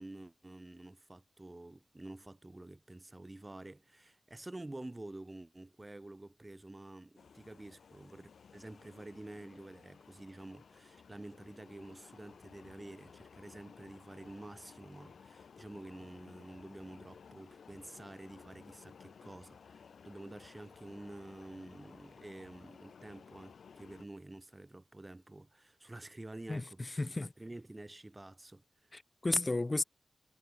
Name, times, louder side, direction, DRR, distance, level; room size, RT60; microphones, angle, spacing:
voice 1, 0.0-26.9 27.4-28.9, right 2 dB, 25° right, 2.0 m, -49 dB
sound 1, 7.2-24.1, left 6 dB, 85° left, 7.7 m, -57 dB
voice 2, 26.5-27.3 28.9-29.8, left 2 dB, 35° left, 0.9 m, -33 dB
cardioid pair, 55°, 0 cm